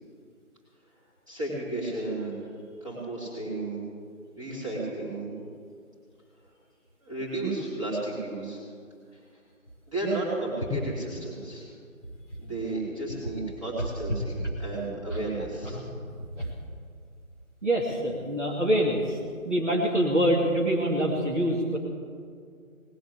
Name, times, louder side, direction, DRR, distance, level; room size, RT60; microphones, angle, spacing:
voice 1, 1.3-2.4 2.8-3.8 4.4-5.3 7.0-8.6 9.1-9.2 9.9-11.7 12.4-14.3 14.6-15.8, right 2 dB, 20° right, -8 dB, 3.7 m, -32 dB
voice 2, 17.6-19.2 19.4-21.8, equal, 55° right, -2 dB, 2.5 m, -25 dB
19.5 x 8.3 x 8.2 m, 2.1 s
figure-of-eight pair, 175°, 42 cm